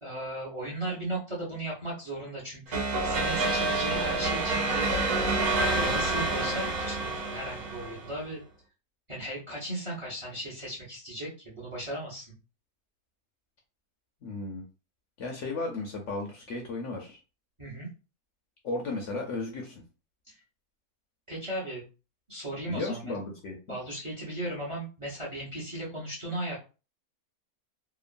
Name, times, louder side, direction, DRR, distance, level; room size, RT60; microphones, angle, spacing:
voice 1, 0.0-4.9 5.5-8.4 9.1-12.3 17.6-17.9 20.3-20.4 21.3-21.8 22.3-23.2 23.7-26.6, right 1 dB, 25° right, -5 dB, 0.7 m, -36 dB
sound 1, 2.7-8.2, right 2 dB, 75° right, 1.2 m, -28 dB
voice 2, 14.2-14.6 15.2-17.2 18.6-19.8 22.7-23.8, left 3 dB, 65° left, 1 dB, 0.8 m, -35 dB
2.9 x 2.3 x 2.4 m, 0.33 s
omnidirectional pair, 1.6 m